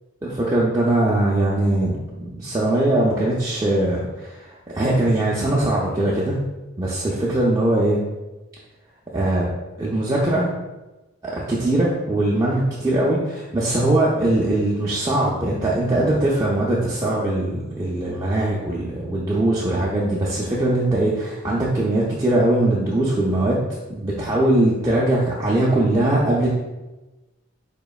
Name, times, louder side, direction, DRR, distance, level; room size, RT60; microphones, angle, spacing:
voice 1, 0.2-6.4 6.8-8.0 9.1-9.5 9.8-10.5 11.2-23.6 23.9-26.5, right 1 dB, 15° right, -6 dB, 0.4 m, -21 dB
4.9 x 2.9 x 2.3 m, 1.1 s
head